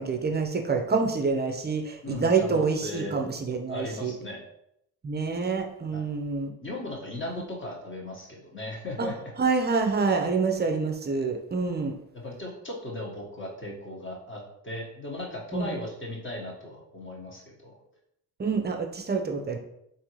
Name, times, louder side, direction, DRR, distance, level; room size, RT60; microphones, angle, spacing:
voice 1, 0.0-4.1 5.0-6.5 9.0-9.1 9.4-12.0 15.5-15.7 18.4-19.6, right 4 dB, 25° right, 4 dB, 0.6 m, -27 dB
voice 2, 2.0-3.1 3.7-4.4 5.9-6.1 6.6-9.3 10.6-10.7 12.1-17.7, left 1 dB, 25° left, -2 dB, 1.3 m, -37 dB
3.4 x 2.7 x 3.0 m, 0.77 s
hypercardioid pair, 55°, 43 cm